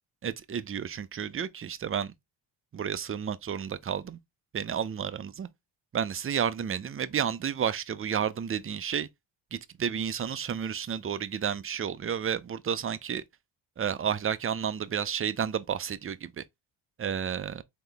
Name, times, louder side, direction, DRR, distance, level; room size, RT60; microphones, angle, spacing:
voice 1, 0.2-2.1 2.7-4.2 4.5-5.5 5.9-9.1 9.5-13.2 13.8-16.4 17.0-17.6, right 8 dB, 30° right, 0.5 m, -31 dB
3.9 x 3.0 x 3.3 m
cardioid pair, 75°, 50 cm